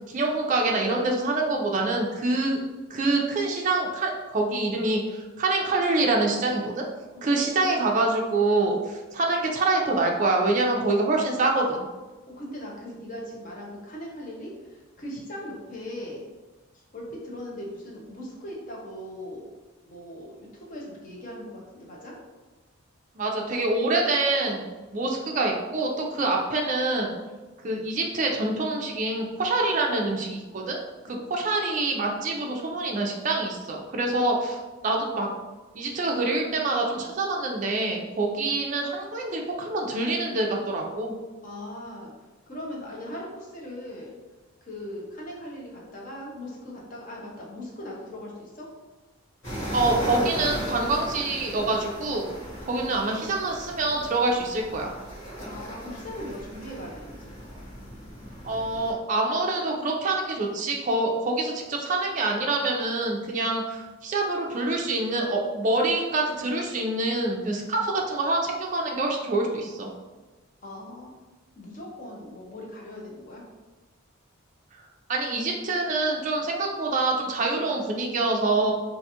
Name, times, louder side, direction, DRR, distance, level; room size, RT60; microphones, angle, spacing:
voice 1, 0.1-2.6 2.9-5.0 5.4-6.8 7.2-11.8 23.2-24.7 24.9-27.1 27.6-30.8 31.3-34.6 34.8-35.3 35.8-41.1 49.7-52.2 52.7-54.9 58.4-69.9 75.1-78.7, right 2 dB, 35° right, 0 dB, 0.3 m, -26 dB
voice 2, 12.3-16.2 16.9-19.5 19.9-22.1 31.0-31.2 41.4-42.1 42.5-44.1 44.6-48.7 52.7-52.8 55.5-57.4 70.6-71.1 71.6-73.4, left 1 dB, 40° left, -3 dB, 0.6 m, -39 dB
sound 1, 49.4-58.9, equal, 55° left, 1.2 m, -36 dB
2.5 x 2.3 x 2.7 m, 1.2 s
head